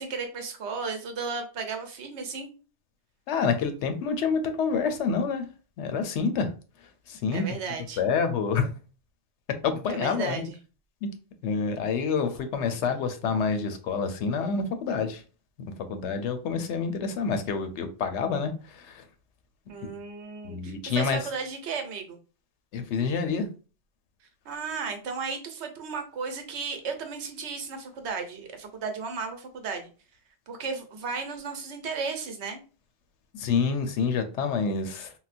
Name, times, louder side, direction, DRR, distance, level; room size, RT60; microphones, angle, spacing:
voice 1, 0.0-2.5 7.3-8.0 9.9-10.6 19.7-22.2 24.4-29.9 30.5-32.6, right 5 dB, 75° right, 1.0 m, -34 dB
voice 2, 3.3-5.5 5.8-6.5 7.1-7.4 8.0-8.7 9.6-10.5 11.0-11.1 11.4-15.2 15.6-19.0 19.8-19.9 20.4-21.3 22.7-23.5 33.3-35.1, left 5 dB, 80° left, 0.9 m, -28 dB
3.8 x 2.1 x 2.4 m
omnidirectional pair, 1.2 m